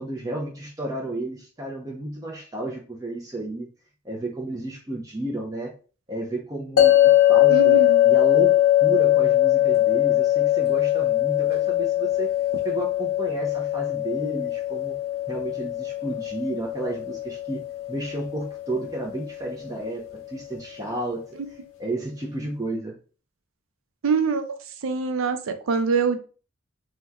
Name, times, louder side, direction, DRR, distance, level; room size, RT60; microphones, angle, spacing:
voice 1, 0.0-3.7 4.0-5.7 6.1-12.3 12.6-15.0 15.3-17.6 17.9-21.2 21.8-23.0, right 2 dB, 15° right, 0.5 m, -32 dB
sound 1, 6.8-19.9, left 13 dB, 85° left, 0.6 m, -21 dB
voice 2, 7.5-8.0 24.0-24.5 24.8-26.2, right 5 dB, 90° right, 0.5 m, -24 dB
2.9 x 2.2 x 3.5 m
head